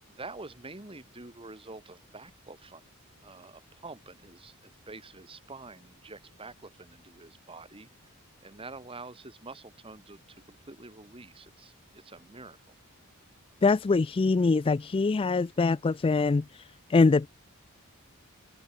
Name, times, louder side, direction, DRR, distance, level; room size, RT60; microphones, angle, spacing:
voice 1, 0.1-2.8 3.2-4.5 4.9-7.9 8.4-10.2 10.5-12.6, right 3 dB, 25° right, 2.0 m, -46 dB
voice 2, 13.6-16.6 16.9-17.3, left 4 dB, 25° left, 0.3 m, -23 dB
head